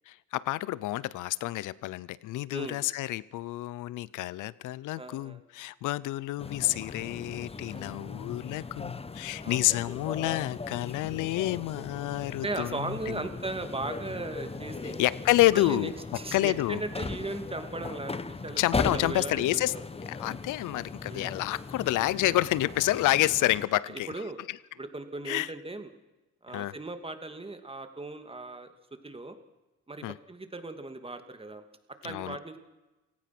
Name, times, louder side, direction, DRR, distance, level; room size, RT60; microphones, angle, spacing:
voice 1, 0.1-13.3 14.8-15.9 16.3-16.8 18.6-19.7 20.1-24.1 24.5-24.6 25.3-25.5 26.5-26.8 30.0-30.1 32.0-32.4, left 16 dB, 85° left, 20 dB, 0.7 m, -29 dB
voice 2, 2.5-2.8 5.0-5.4 9.4-9.7 12.4-15.0 15.5-18.6 18.9-19.8 21.1-21.3 24.1-24.4 24.8-25.9 26.4-28.7 29.0-29.4 29.9-31.6 32.0-32.6, right 2 dB, 20° right, 7 dB, 2.5 m, -37 dB
sound 1, 6.4-23.7, left 4 dB, 20° left, 1.0 m, -38 dB
29.0 x 17.5 x 6.1 m, 1.1 s
cardioid pair, 90°, 30 cm